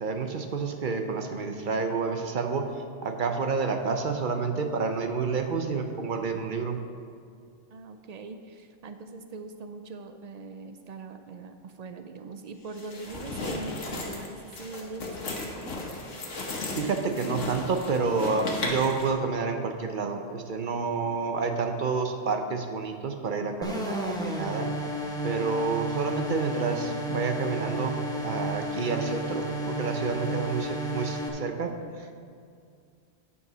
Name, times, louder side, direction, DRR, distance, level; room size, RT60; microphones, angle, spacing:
voice 1, 0.0-6.8 16.8-24.7 25.2-31.7 32.0-32.2, right 4 dB, 50° right, 5 dB, 0.7 m, -29 dB
voice 2, 7.7-15.8, right 3 dB, 75° right, 8 dB, 0.3 m, -42 dB
sound 1, 12.7-19.1, left 2 dB, 80° left, 1.6 m, -35 dB
sound 2, 23.6-31.3, equal, 5° left, 0.8 m, -32 dB
9.4 x 5.5 x 6.0 m, 2.3 s
omnidirectional pair, 1.3 m